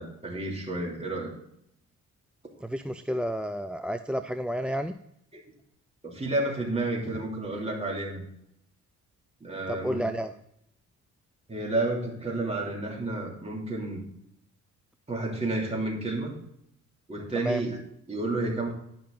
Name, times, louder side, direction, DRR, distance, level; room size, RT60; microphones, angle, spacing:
voice 1, 0.0-1.3 5.3-5.4 6.0-8.2 9.4-10.0 11.5-14.0 15.1-16.3 17.1-17.8 18.1-18.7, right 2 dB, 20° right, -1 dB, 2.7 m, -31 dB
voice 2, 2.6-4.9 9.7-10.3 17.3-17.6, equal, 5° right, 10 dB, 0.3 m, -30 dB
10.5 x 5.7 x 3.7 m, 0.76 s
cardioid pair, 90°, 30 cm